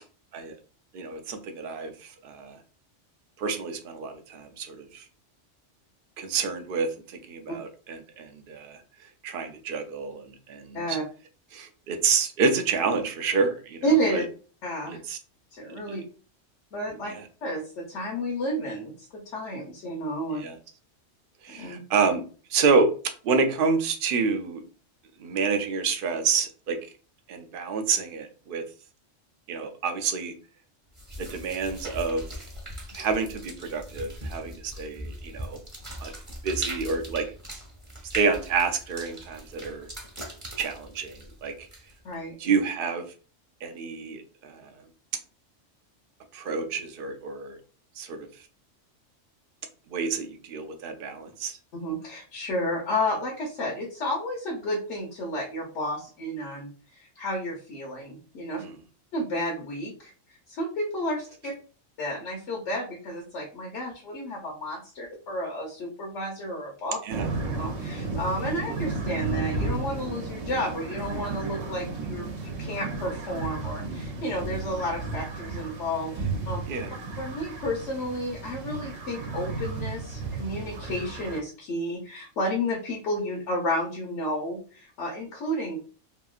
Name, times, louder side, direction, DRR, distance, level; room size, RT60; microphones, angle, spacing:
voice 1, 0.9-2.6 3.4-5.0 6.2-8.8 9.2-11.0 11.5-13.8 14.1-14.2 14.9-15.2 15.9-16.0 17.1-17.2 20.4-20.6 21.4-22.2 22.5-22.9 23.2-24.6 25.2-26.8 27.3-28.6 29.5-30.3 31.2-32.2 32.9-35.6 36.0-36.1 36.4-37.3 38.1-39.9 40.6-41.7 42.4-43.0 43.6-44.6 46.3-47.6 48.0-48.3 49.9-51.6 58.6-58.7 67.0-67.3 76.7-76.9, right 5 dB, 60° right, 6 dB, 0.6 m, -28 dB
voice 2, 13.8-14.2 14.6-15.0 15.5-16.0 16.7-17.1 17.4-20.4 21.6-21.8 42.0-42.3 51.7-58.6 59.1-60.1 60.5-61.5 62.0-67.0 67.6-76.2 76.5-76.7 77.2-85.8, equal, 70° left, -3 dB, 1.1 m, -31 dB
sound 1, 30.9-42.1, right 1 dB, 20° right, 0.7 m, -40 dB
sound 2, 67.1-81.4, right 3 dB, 80° right, 1.0 m, -33 dB
2.9 x 2.6 x 2.3 m, 0.38 s
omnidirectional pair, 1.3 m